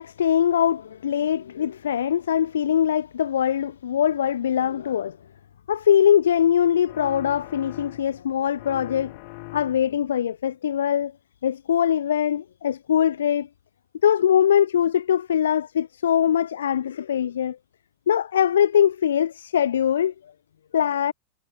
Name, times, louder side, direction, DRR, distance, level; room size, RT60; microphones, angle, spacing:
voice 1, 0.0-5.2 5.7-9.1 9.5-11.1 11.4-13.5 14.0-17.6 18.1-20.1 20.7-21.1, left 9 dB, 65° left, 0.6 m, -22 dB
sound 1, 6.8-8.3 8.6-10.1, left 35 dB, 45° left, 1.0 m, -41 dB
figure-of-eight pair, 90°, 0 cm